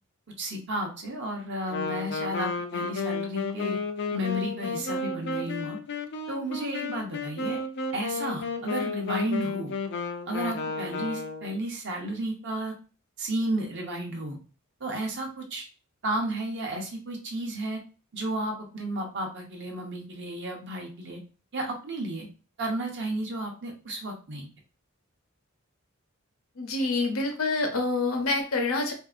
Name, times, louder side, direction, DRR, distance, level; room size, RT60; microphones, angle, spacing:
voice 1, 0.4-3.8 4.1-5.8 6.3-7.6 7.9-9.7 10.3-12.7 13.2-14.4 14.8-15.6 16.0-17.8 18.1-21.2 21.5-22.3 22.6-24.5, right 1 dB, 55° right, 1 dB, 0.8 m, -32 dB
Wind instrument woodwind instrument, 1.7-11.6, left 3 dB, 55° left, 0.4 m, -32 dB
voice 2, 26.6-28.9, left 3 dB, 75° left, 3 dB, 0.8 m, -27 dB
3.2 x 2.7 x 2.4 m, 0.36 s
head